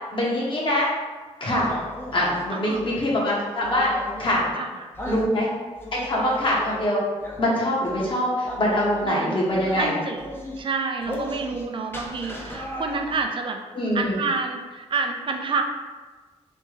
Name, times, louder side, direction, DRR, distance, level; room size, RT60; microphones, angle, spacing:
voice 1, 0.1-0.9 1.4-1.7 2.1-3.9 4.2-4.4 5.1-5.5 5.9-7.0 7.4-9.9 13.7-14.1, left 1 dB, 45° left, -5 dB, 1.1 m, -23 dB
sound 1, 1.5-3.0 3.6-4.5 4.9-5.3 5.8-6.8 7.2-7.4 7.8-8.1 8.4-9.1 9.5-9.9 10.2-10.6 11.0-11.6 11.9-13.2, left 1 dB, 20° left, 0.6 m, -36 dB
voice 2, 2.5-2.9 4.5-5.4 9.0-9.4 9.7-10.3 10.6-13.6 13.9-15.6, right 4 dB, 45° right, 4 dB, 0.4 m, -29 dB
3.3 x 2.7 x 3.1 m, 1.3 s
cardioid pair, 90°, 12 cm